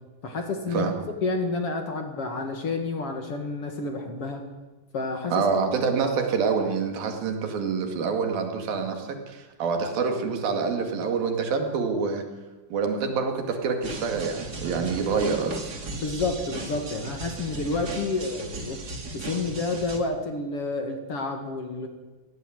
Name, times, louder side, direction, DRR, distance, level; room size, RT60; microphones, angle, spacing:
voice 1, 0.2-0.9 1.2-4.4 4.9-5.4 15.9-18.8 19.1-21.9, left 3 dB, 45° left, 4 dB, 2.6 m, -29 dB
voice 2, 5.3-12.3 12.7-15.8, right 5 dB, 80° right, 4 dB, 4.1 m, -26 dB
sound 1, 13.8-20.0, right 3 dB, 30° right, 2.2 m, -36 dB
17.5 x 17.5 x 9.3 m, 1.2 s
omnidirectional pair, 4.1 m